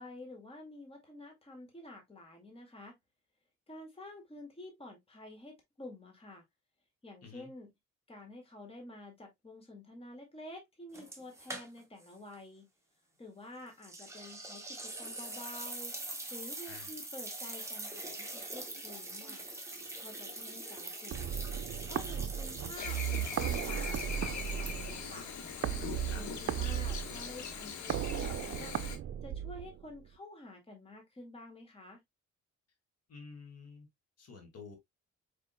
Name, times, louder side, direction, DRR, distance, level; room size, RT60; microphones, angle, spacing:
voice 1, 0.0-3.0 3.7-6.4 7.0-7.7 8.1-12.7 13.2-16.0 16.3-19.4 20.0-21.4 21.8-25.3 26.1-28.7 29.2-32.0, left 1 dB, 20° left, 1.9 m, -50 dB
voice 2, 7.2-7.5 16.7-16.9 26.1-26.3 33.1-33.9 34.2-34.8, left 4 dB, 55° left, 2.2 m, -50 dB
sound 1, 10.9-12.1 12.3-12.4 13.8-25.1, right 2 dB, 10° right, 1.6 m, -43 dB
sound 2, 21.1-30.1, right 9 dB, 50° right, 0.6 m, -36 dB
Chirp tweet / Buzz, 22.8-29.0, left 7 dB, 70° left, 1.3 m, -42 dB
4.9 x 4.5 x 2.2 m
cardioid pair, 90°, 30 cm